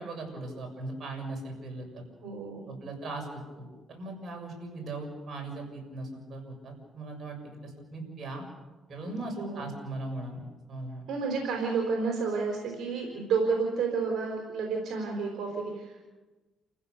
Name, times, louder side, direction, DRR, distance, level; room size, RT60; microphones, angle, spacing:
voice 1, 0.0-2.0 2.7-8.4 8.9-11.0, right 2 dB, 50° right, 2 dB, 6.9 m, -39 dB
voice 2, 2.2-2.6 9.4-9.7 11.1-16.0, right 5 dB, 70° right, 1 dB, 4.6 m, -30 dB
29.0 x 15.5 x 6.9 m, 1.2 s
cardioid pair, 90°, 0 cm